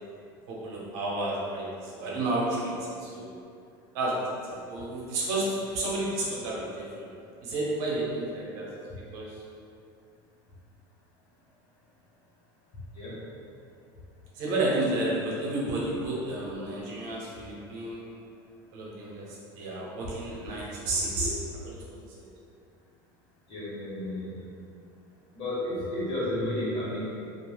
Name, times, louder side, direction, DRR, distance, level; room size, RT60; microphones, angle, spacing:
voice 1, 0.5-3.3 3.9-4.2 4.5-7.1 7.4-8.7 9.1-9.4 14.3-18.0 18.7-21.3 21.6-22.0, right 2 dB, 65° right, -5 dB, 0.8 m, -31 dB
voice 2, 23.5-24.5 25.3-27.0, left 1 dB, 45° left, -7 dB, 1.1 m, -32 dB
3.1 x 2.5 x 2.3 m, 2.5 s
supercardioid pair, 110°, 12 cm